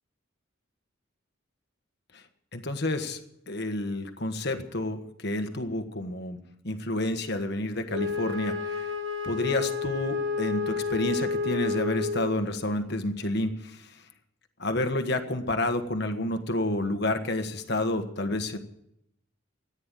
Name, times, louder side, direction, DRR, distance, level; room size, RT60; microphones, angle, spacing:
voice 1, 2.5-3.2 3.5-8.9 9.2-13.9 14.6-18.6, left 1 dB, 55° left, 7 dB, 1.5 m, -30 dB
Wind instrument woodwind instrument, 7.9-12.5, left 4 dB, 75° right, 7.8 m, -30 dB
14.0 x 10.0 x 9.0 m, 0.77 s
head